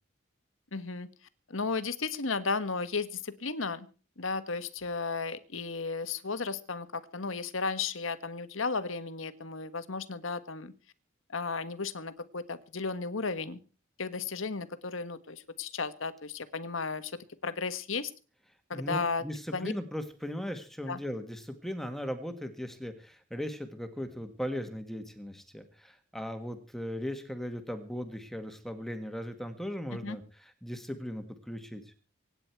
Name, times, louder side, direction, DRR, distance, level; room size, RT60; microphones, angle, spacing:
voice 1, 0.7-1.1 1.5-3.9 4.2-10.7 11.3-13.6 14.0-18.1 18.7-19.2 19.5-19.7 20.9-21.0 30.0-30.2, left 4 dB, 75° left, 13 dB, 1.4 m, -34 dB
voice 2, 18.7-31.9, equal, ahead, 7 dB, 1.6 m, -38 dB
25.0 x 9.9 x 4.6 m, 0.38 s
head